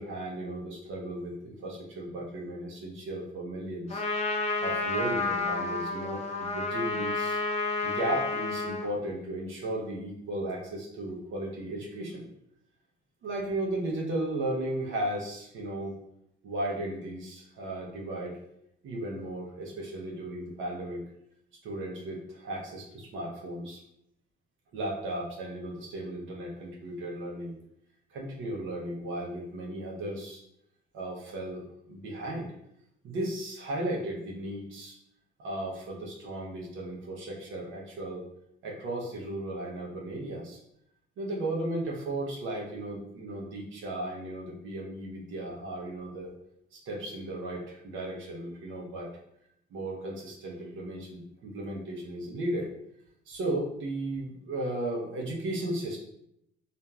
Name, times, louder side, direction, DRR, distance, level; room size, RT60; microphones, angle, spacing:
voice 1, 0.0-4.0 4.6-7.4 7.8-12.3 13.2-15.9 16.4-18.4 18.8-21.0 21.6-23.8 24.7-27.6 28.1-30.4 30.9-32.5 33.0-35.0 35.4-38.3 38.6-40.6 41.2-46.3 46.7-49.1 49.7-52.7 53.3-56.0, right 1 dB, 80° right, -1 dB, 0.8 m, -35 dB
Trumpet, 3.9-8.9, left 3 dB, 35° left, 0.4 m, -30 dB
2.9 x 2.5 x 2.3 m, 0.76 s
cardioid pair, 90°, 20 cm